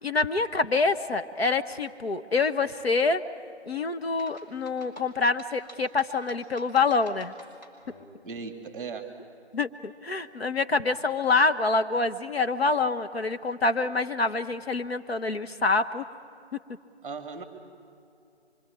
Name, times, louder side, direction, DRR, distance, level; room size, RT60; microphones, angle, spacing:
voice 1, 0.0-3.2 3.7-7.3 9.5-16.0, left 3 dB, 65° left, 7 dB, 1.2 m, -26 dB
sound 1, 4.2-8.0, equal, 40° left, 5.6 m, -51 dB
voice 2, 8.2-9.2 17.0-17.4, right 5 dB, 10° right, 5 dB, 2.1 m, -37 dB
25.5 x 25.0 x 8.7 m, 2.6 s
figure-of-eight pair, 155°, 33 cm